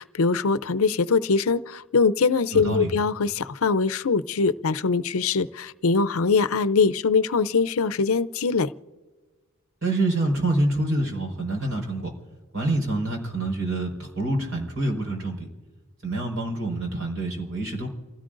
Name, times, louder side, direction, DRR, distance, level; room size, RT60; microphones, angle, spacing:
voice 1, 0.0-8.7, left 4 dB, 75° left, 14 dB, 0.6 m, -22 dB
voice 2, 2.5-2.9 9.8-12.1 12.5-15.5 16.0-17.9, right 2 dB, 65° right, 2 dB, 4.7 m, -26 dB
28.5 x 16.5 x 2.6 m, 1.3 s
head